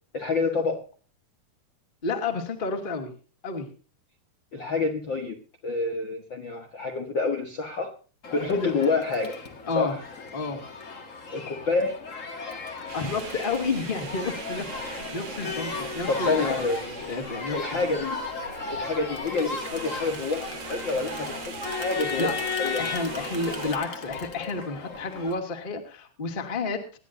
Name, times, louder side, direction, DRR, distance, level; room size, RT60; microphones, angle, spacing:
voice 1, 0.1-0.8 4.5-5.4 5.6-7.9 8.3-9.4 9.7-10.0 11.3-12.0 16.1-16.8 17.5-18.2 18.7-22.3 22.6-22.8, left 3 dB, 90° left, 4 dB, 1.0 m, -27 dB
voice 2, 2.0-3.1 3.4-3.7 8.5-8.7 9.7-10.0 10.3-10.6 12.9-17.9 22.2-22.3 22.8-26.8, left 3 dB, 20° left, 4 dB, 1.4 m, -31 dB
Crowd, 8.2-25.3, left 4 dB, 55° left, 0.8 m, -35 dB
sound 1, 12.9-23.8, right 5 dB, 85° right, 4.3 m, -41 dB
24.5 x 11.0 x 2.7 m, 0.39 s
omnidirectional pair, 4.6 m